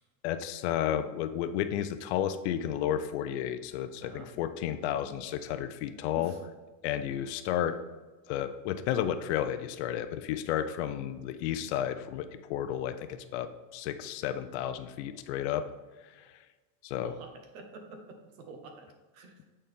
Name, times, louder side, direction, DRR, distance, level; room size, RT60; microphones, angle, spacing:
voice 1, 0.2-6.3 6.8-7.8 8.3-15.7 16.2-16.3 16.8-17.1, left 10 dB, 55° left, 11 dB, 0.5 m, -32 dB
voice 2, 4.0-4.3 6.1-6.4 17.0-18.9 19.1-19.4, right 3 dB, 85° right, 4 dB, 1.4 m, -47 dB
7.7 x 4.2 x 3.5 m, 1.3 s
supercardioid pair, 165°, 40 cm